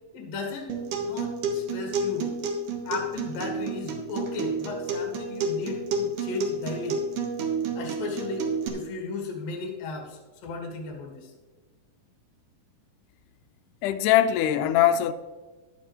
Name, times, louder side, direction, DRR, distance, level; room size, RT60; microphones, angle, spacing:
voice 1, 0.1-0.8 1.0-2.3 2.8-7.0 7.8-11.3, left 4 dB, 70° left, 3.3 m, -35 dB
Acoustic guitar, 0.7-8.7, right 3 dB, 65° right, 2.6 m, -30 dB
voice 2, 13.8-15.1, left 11 dB, 85° left, 1.8 m, -21 dB
14.5 x 11.0 x 3.1 m
omnidirectional pair, 4.2 m